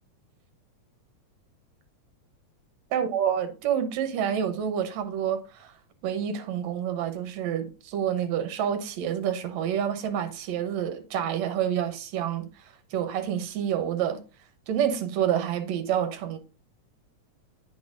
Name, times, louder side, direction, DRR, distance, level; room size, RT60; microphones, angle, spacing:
voice 1, 2.9-5.7 6.0-14.2 14.7-16.4, right 9 dB, 75° right, 2.1 m, -28 dB
8.7 x 5.7 x 2.4 m
omnidirectional pair, 3.3 m